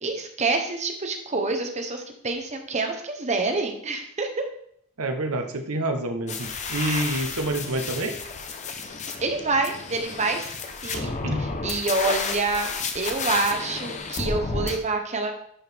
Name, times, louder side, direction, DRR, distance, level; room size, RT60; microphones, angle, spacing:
voice 1, 0.0-4.5 9.2-15.3, right 3 dB, 30° right, 5 dB, 1.0 m, -27 dB
voice 2, 5.0-8.2 10.9-11.4, right 2 dB, 70° right, 6 dB, 1.0 m, -28 dB
sound 1, 6.3-14.8, left 4 dB, 30° left, 0.7 m, -32 dB
10.5 x 4.7 x 3.5 m, 0.69 s
head